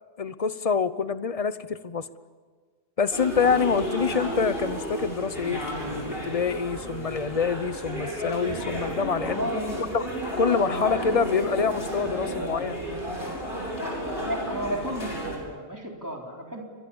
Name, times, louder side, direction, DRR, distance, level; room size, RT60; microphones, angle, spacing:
voice 1, 0.2-2.1 3.0-9.5 9.9-10.0 10.4-13.0, left 5 dB, 35° left, 14 dB, 0.9 m, -26 dB
sound 1, 3.1-15.4, equal, 55° left, 7.3 m, -32 dB
voice 2, 9.1-9.8 10.6-11.3 12.2-12.6 14.2-16.6, equal, 15° right, 0 dB, 3.6 m, -33 dB
29.5 x 23.5 x 7.2 m, 1.5 s
omnidirectional pair, 1.2 m